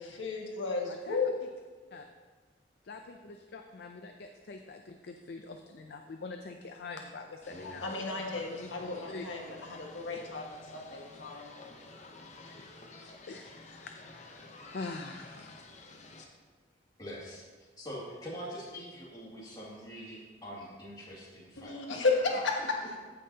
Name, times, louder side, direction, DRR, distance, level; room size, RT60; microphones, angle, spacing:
voice 1, 0.2-1.3 1.9-2.0 7.6-11.6 21.6-23.0, left 3 dB, 90° left, 0 dB, 1.3 m, -33 dB
voice 2, 2.8-9.3 10.1-10.2 12.4-15.6, left 3 dB, 60° left, 5 dB, 0.5 m, -45 dB
sound 1, 7.4-16.2, left 2 dB, 40° left, 0.9 m, -51 dB
voice 3, 7.5-7.8 17.0-22.0, equal, 20° left, -7 dB, 2.3 m, -44 dB
14.5 x 5.5 x 2.8 m, 1.4 s
head